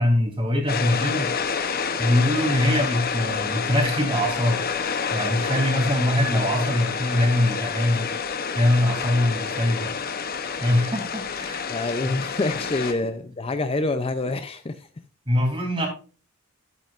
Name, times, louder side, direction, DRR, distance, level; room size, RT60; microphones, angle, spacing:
voice 1, 0.0-1.3 2.0-4.6 5.1-8.1 8.5-9.9 10.6-12.2 12.6-12.7 15.3-15.9, left 1 dB, 25° right, 3.1 m, -23 dB
sound 1, 0.7-12.9, left 6 dB, 45° left, 0.8 m, -28 dB
voice 2, 11.7-14.8, left 2 dB, 25° left, 0.5 m, -26 dB
11.5 x 8.6 x 2.5 m
head